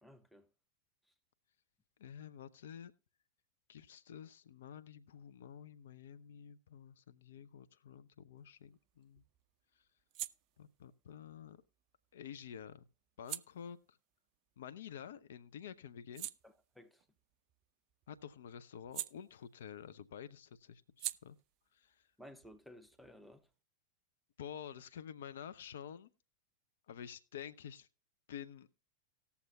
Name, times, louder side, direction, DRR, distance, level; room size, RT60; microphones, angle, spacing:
voice 1, 0.0-0.5 16.4-17.0 22.2-23.5, equal, ahead, 0.7 m, -56 dB
voice 2, 2.0-2.9 3.7-9.2 10.6-11.6 12.1-12.9 13.2-14.0 14.6-16.3 18.1-21.4 21.7-22.0 24.4-26.1 26.9-27.9 28.3-28.7, left 8 dB, 60° left, 0.4 m, -50 dB
sound 1, 8.4-15.2 15.6-19.9 20.1-23.5, right 13 dB, 40° right, 0.3 m, -50 dB
18.5 x 7.0 x 2.3 m
figure-of-eight pair, 90°, 0 cm